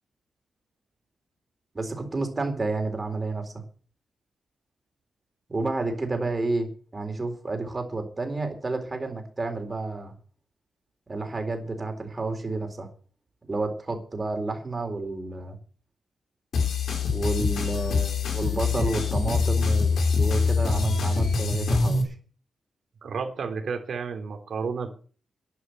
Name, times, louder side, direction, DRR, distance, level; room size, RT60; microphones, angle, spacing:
voice 1, 1.7-3.5 5.5-10.1 11.1-12.9 13.5-15.6 17.1-22.1, right 3 dB, 25° right, 4 dB, 4.0 m, -30 dB
sound 1, 16.5-22.0, left 4 dB, 70° left, 4.7 m, -24 dB
voice 2, 23.0-24.9, right 5 dB, 55° right, 4 dB, 3.5 m, -31 dB
11.5 x 11.0 x 7.9 m, 0.40 s
wide cardioid pair, 165°, 0 cm